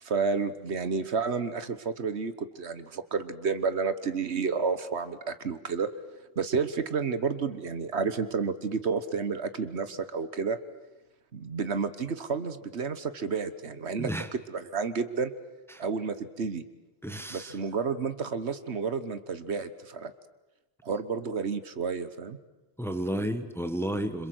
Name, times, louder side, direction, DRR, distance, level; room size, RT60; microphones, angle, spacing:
voice 1, 0.0-5.9 6.4-10.6 11.3-14.1 14.5-15.3 15.8-16.6 17.3-20.1 20.8-22.4, right 5 dB, 70° right, 12 dB, 1.5 m, -30 dB
voice 2, 14.0-14.3 15.7-15.8 17.0-17.6 22.8-24.3, right 1 dB, ahead, 8 dB, 1.5 m, -32 dB
27.0 x 26.0 x 8.0 m, 1.0 s
omnidirectional pair, 1.2 m